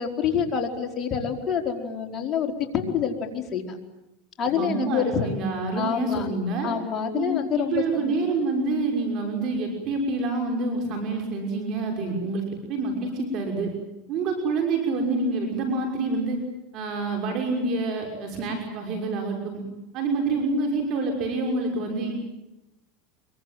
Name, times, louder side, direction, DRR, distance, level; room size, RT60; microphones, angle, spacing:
voice 1, 0.0-3.8 4.4-5.4 5.7-6.3 6.6-8.4, left 7 dB, 35° left, 3 dB, 4.4 m, -27 dB
voice 2, 4.4-6.7 7.1-13.7 14.1-16.4 16.7-19.6 19.9-22.1, right 3 dB, 50° right, 3 dB, 6.2 m, -27 dB
25.0 x 23.5 x 9.3 m, 0.94 s
supercardioid pair, 115°, 0 cm